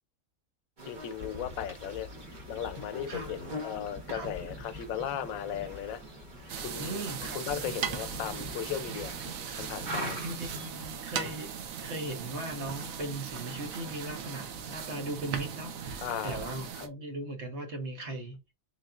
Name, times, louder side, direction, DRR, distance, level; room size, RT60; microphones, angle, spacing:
sound 1, 0.8-10.7, equal, 35° right, 1.4 m, -44 dB
voice 1, 0.9-2.1 2.5-6.0 6.6-7.1 7.3-9.1 9.6-10.2 16.0-16.9, left 9 dB, 85° left, 1.0 m, -36 dB
sound 2, 1.2-17.0, left 1 dB, 10° right, 0.6 m, -49 dB
voice 2, 4.1-4.5 6.8-7.4 10.0-11.5 11.8-18.4, right 1 dB, 55° right, 1.4 m, -38 dB
sound 3, 6.5-16.9, right 7 dB, 90° right, 1.2 m, -38 dB
3.9 x 3.7 x 2.4 m
omnidirectional pair, 1.4 m